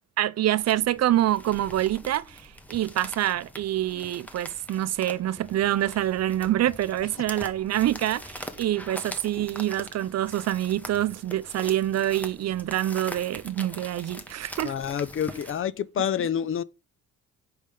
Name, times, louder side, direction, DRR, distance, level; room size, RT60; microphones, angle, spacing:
voice 1, 0.2-14.7, right 13 dB, 55° right, 0.5 m, -26 dB
sound 1, 0.6-15.6, equal, 5° left, 1.1 m, -43 dB
voice 2, 14.6-16.6, left 9 dB, 45° left, 0.5 m, -28 dB
5.3 x 5.1 x 5.1 m
cardioid pair, 90°, 30 cm